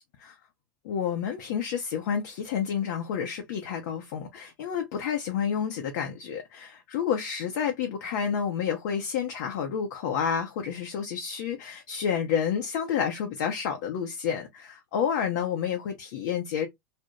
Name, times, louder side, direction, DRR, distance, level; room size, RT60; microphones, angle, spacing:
voice 1, 0.8-16.7, left 7 dB, 55° left, 0.6 m, -29 dB
2.4 x 2.1 x 2.8 m
figure-of-eight pair, 85°, 11 cm